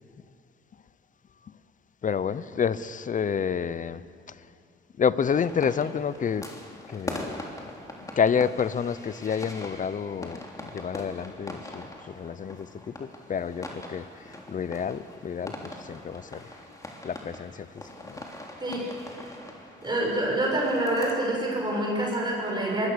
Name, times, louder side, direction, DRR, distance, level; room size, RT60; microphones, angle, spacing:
voice 1, 2.0-4.0 5.0-6.5 6.9-7.3 8.2-14.0 14.5-16.5 17.0-17.7 18.0-18.2, left 7 dB, 40° left, 16 dB, 0.8 m, -29 dB
sound 1, 5.3-21.1, left 1 dB, 15° left, 3.3 m, -42 dB
voice 2, 19.8-22.9, right 1 dB, 20° right, -2 dB, 6.2 m, -26 dB
24.5 x 20.5 x 6.9 m, 2.4 s
cardioid pair, 90°, 20 cm